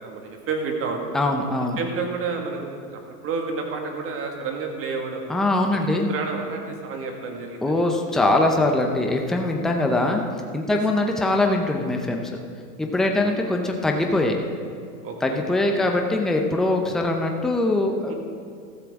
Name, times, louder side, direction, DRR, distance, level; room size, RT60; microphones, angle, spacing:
voice 1, 0.0-1.0 1.8-5.3 5.7-5.8 6.1-7.8 10.0-10.1 10.7-10.8 13.2-13.4 15.0-15.4 18.1-18.2, right 4 dB, 30° right, 2 dB, 1.9 m, -30 dB
voice 2, 1.1-1.8 5.3-6.1 7.6-10.2 10.5-12.2 12.8-14.4 15.2-18.1, left 2 dB, ahead, 2 dB, 0.6 m, -22 dB
15.0 x 13.0 x 3.7 m, 2.4 s
hypercardioid pair, 130°, 47 cm